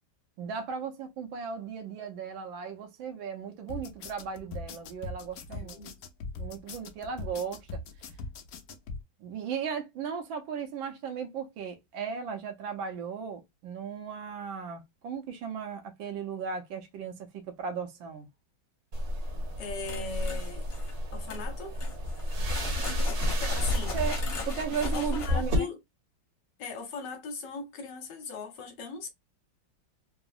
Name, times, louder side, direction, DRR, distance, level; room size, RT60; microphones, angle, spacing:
voice 1, 0.4-5.8 6.4-7.8 9.2-18.3 23.9-24.2 24.5-25.7, right 6 dB, 80° right, 1.4 m, -36 dB
sound 1, 3.7-9.0, left 3 dB, 85° left, 0.7 m, -40 dB
voice 2, 5.5-6.0 19.6-20.7 21.1-21.8 23.4-24.0 24.9-25.8 26.6-29.1, left 4 dB, 70° left, 1.3 m, -39 dB
sound 2, 18.9-25.6, left 1 dB, 55° right, 1.2 m, -31 dB
sound 3, 19.8-21.0 21.3-21.4 21.8-25.3, left 3 dB, 50° left, 1.3 m, -39 dB
3.6 x 2.0 x 2.3 m
omnidirectional pair, 2.1 m